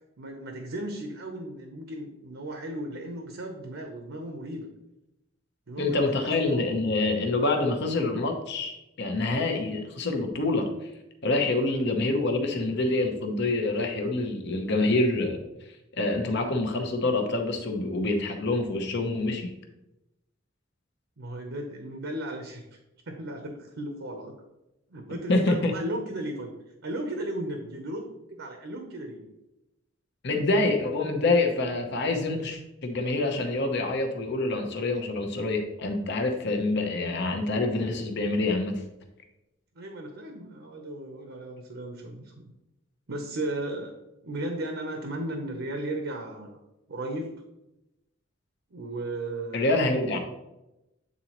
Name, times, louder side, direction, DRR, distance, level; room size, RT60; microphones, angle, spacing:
voice 1, 0.2-4.7 5.7-6.6 11.7-11.9 21.2-22.6 23.1-24.4 24.9-26.5 26.8-28.0 28.3-29.2 39.8-42.3 43.1-43.9 44.2-46.6 46.9-47.3 48.7-50.2, right 1 dB, 70° right, 3 dB, 0.8 m, -35 dB
voice 2, 5.8-10.7 11.2-15.4 16.0-19.5 25.3-25.7 30.2-38.8 49.5-50.2, left 2 dB, 60° left, 4 dB, 0.9 m, -26 dB
8.5 x 3.9 x 3.0 m, 0.93 s
head